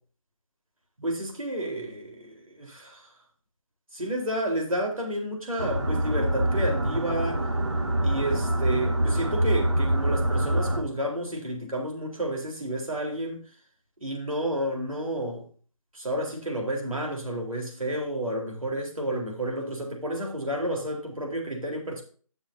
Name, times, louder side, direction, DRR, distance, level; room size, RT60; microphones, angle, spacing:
voice 1, 1.0-3.1 3.9-7.5 8.0-13.4 14.0-15.5 15.9-22.0, right 1 dB, 75° right, 4.1 m, -31 dB
sound 1, 5.6-10.8, right 1 dB, 50° right, 1.4 m, -25 dB
14.5 x 7.2 x 2.8 m
figure-of-eight pair, 160°, 18 cm